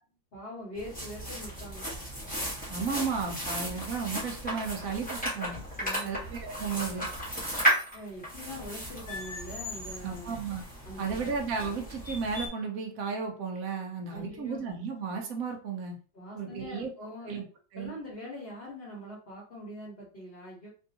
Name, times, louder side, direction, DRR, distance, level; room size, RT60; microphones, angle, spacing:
voice 1, 0.3-1.9 5.8-6.2 7.9-10.3 10.8-11.3 14.1-14.6 16.1-17.3 17.8-20.7, equal, 35° left, -5 dB, 1.0 m, -43 dB
sound 1, 0.7-12.5, equal, 5° left, 0.8 m, -35 dB
voice 2, 2.7-5.6 6.0-7.1 10.0-10.6 11.0-15.9 16.3-16.9 17.2-17.4 17.7-18.0, right 5 dB, 60° right, 1 dB, 1.0 m, -34 dB
3.5 x 2.5 x 2.7 m, 0.38 s
omnidirectional pair, 2.1 m